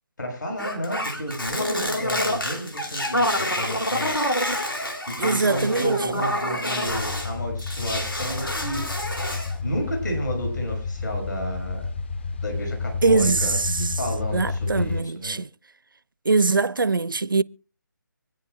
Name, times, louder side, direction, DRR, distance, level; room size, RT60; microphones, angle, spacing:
voice 1, 0.2-4.1 5.2-8.8 9.6-11.8 12.4-13.6 14.0-15.4, equal, 60° left, 6.6 m, -31 dB
sound 1, 0.6-7.3 7.6-9.6, left 1 dB, 80° left, 2.6 m, -27 dB
voice 2, 5.2-6.2 13.0-14.0 14.3-15.5 16.3-17.4, right 3 dB, 75° right, 0.5 m, -22 dB
sound 2, 6.8-15.0, left 4 dB, 30° left, 0.7 m, -30 dB
25.5 x 9.8 x 2.3 m
figure-of-eight pair, 150°, 11 cm